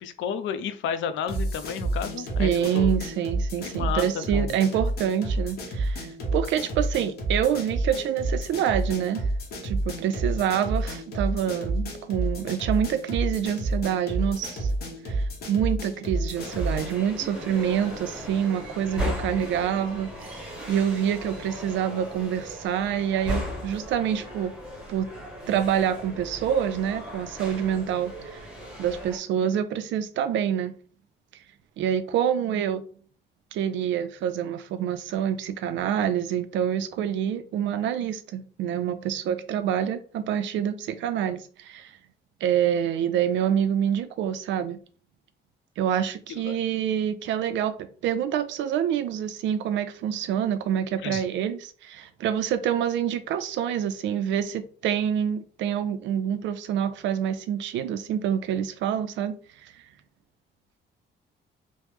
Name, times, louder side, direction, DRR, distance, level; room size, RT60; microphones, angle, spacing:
voice 1, 0.0-2.9 3.6-4.5 46.3-46.6 51.0-51.2, left 7 dB, 80° left, 0.4 m, -32 dB
sound 1, 1.3-17.0, right 2 dB, 55° left, 1.0 m, -30 dB
voice 2, 2.4-9.3 9.6-14.7 15.1-24.5 24.9-25.1 25.5-28.4 28.8-30.7 31.8-32.8 33.5-41.9 42.4-44.8 45.8-59.4 59.6-59.7, right 9 dB, 75° right, 0.4 m, -27 dB
sound 2, 16.3-29.2, equal, 5° right, 0.8 m, -36 dB
3.1 x 2.0 x 3.2 m
cardioid pair, 150°, 19 cm